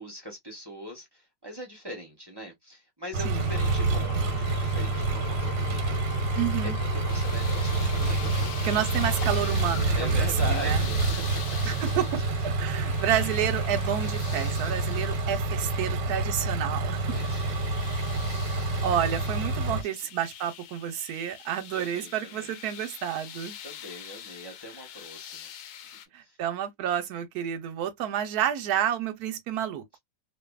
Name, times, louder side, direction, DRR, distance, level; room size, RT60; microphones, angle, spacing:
voice 1, 0.0-6.1 6.6-8.6 9.4-11.7 13.1-13.3 14.0-14.1 15.6-16.0 17.1-18.3 19.6-20.1 21.4-22.5 23.6-25.5 25.8-26.4, equal, 25° right, 0.6 m, -42 dB
Engine, 3.1-19.8, right 3 dB, 90° right, 1.3 m, -28 dB
Engine / Tools, 3.2-10.7, left 6 dB, 90° left, 1.3 m, -41 dB
voice 2, 3.2-3.6 6.3-6.8 8.6-10.8 11.6-12.0 12.4-17.0 18.5-23.6 26.1-30.0, right 10 dB, 70° right, 1.0 m, -30 dB
sound 1, 7.1-26.1, left 9 dB, 75° left, 1.1 m, -44 dB
2.6 x 2.6 x 2.2 m
omnidirectional pair, 1.9 m